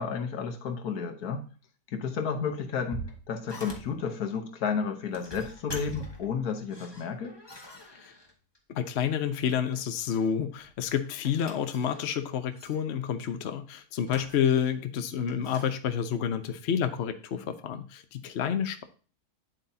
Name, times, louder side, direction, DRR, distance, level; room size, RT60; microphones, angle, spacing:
voice 1, 0.0-1.5 1.9-7.4, left 6 dB, 75° left, 6 dB, 1.5 m, -32 dB
sound 1, 2.5-4.1 4.9-6.4 6.7-8.6 9.5-10.3 10.6-12.2 12.6-12.8 14.0-14.8 15.3-15.7, equal, 20° left, 1.2 m, -44 dB
voice 2, 8.7-18.8, left 8 dB, 55° left, 9 dB, 0.8 m, -29 dB
9.0 x 7.7 x 2.7 m, 0.37 s
omnidirectional pair, 1.7 m